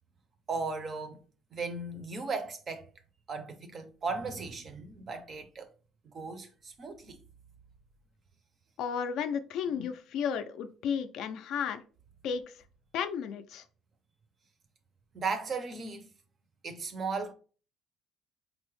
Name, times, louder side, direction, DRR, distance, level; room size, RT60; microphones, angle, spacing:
voice 1, 0.5-1.2 1.5-2.9 3.3-5.7 6.1-7.2 9.7-9.9 15.1-16.1 16.6-17.3, right 4 dB, 30° right, 0.5 m, -36 dB
voice 2, 8.8-11.8 12.2-12.5 12.9-13.6, left 7 dB, 60° left, 0.3 m, -33 dB
4.5 x 2.0 x 3.0 m
cardioid pair, 170°, 0 cm